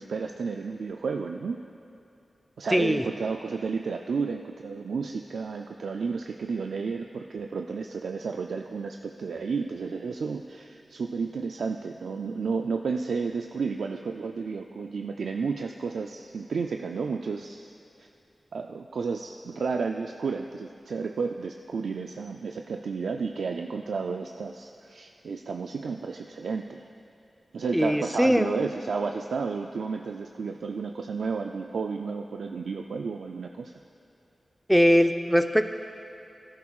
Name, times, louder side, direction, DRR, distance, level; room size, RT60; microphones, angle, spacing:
voice 1, 0.0-1.6 2.6-17.7 18.5-26.9 27.5-33.7, right 5 dB, 90° right, 3 dB, 0.3 m, -32 dB
voice 2, 2.7-3.0 27.7-28.6 34.7-35.6, equal, ahead, 7 dB, 0.5 m, -21 dB
17.0 x 11.0 x 2.4 m, 2.8 s
cardioid pair, 65°, 0 cm